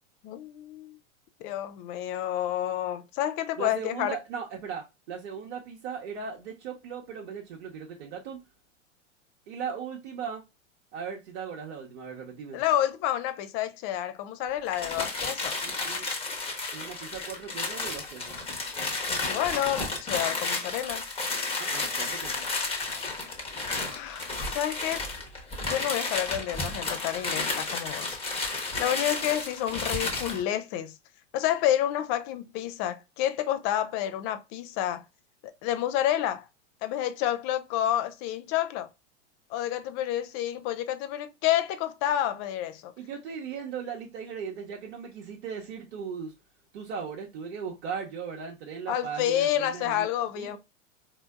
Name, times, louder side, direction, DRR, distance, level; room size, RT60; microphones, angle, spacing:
voice 1, 0.2-1.0 1.4-4.2 12.5-15.6 19.3-21.0 23.9-25.0 25.6-28.2 28.8-30.9 31.3-35.0 35.6-36.4 36.8-38.9 39.5-42.9 48.9-50.6, left 12 dB, 35° left, 0.5 m, -29 dB
voice 2, 3.6-8.4 9.5-10.4 10.9-12.6 15.6-16.1 16.7-18.4 21.6-22.4 43.0-46.3 46.7-50.1 50.4-50.6, right 6 dB, 60° right, 1.0 m, -38 dB
sound 1, 14.6-30.4, left 3 dB, 15° left, 1.1 m, -32 dB
4.2 x 2.8 x 2.3 m
figure-of-eight pair, 95°, 37 cm